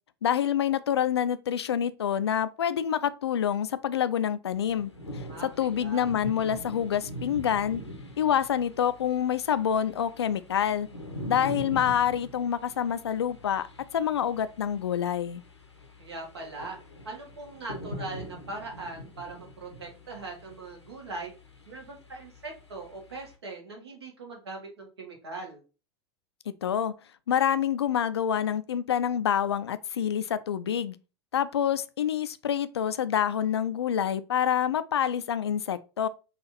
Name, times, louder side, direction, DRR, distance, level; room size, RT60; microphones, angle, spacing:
voice 1, 0.2-7.8 8.2-10.9 11.3-13.7 13.9-15.4 26.5-26.9 27.3-31.0 31.3-36.1, left 9 dB, 70° left, 0.4 m, -27 dB
sound 1, 4.5-23.3, equal, 85° left, 0.8 m, -43 dB
voice 2, 5.3-6.0 16.0-16.8 17.0-21.3 21.7-25.6, right 3 dB, 70° right, 1.4 m, -40 dB
4.1 x 2.5 x 4.1 m
figure-of-eight pair, 85°, 14 cm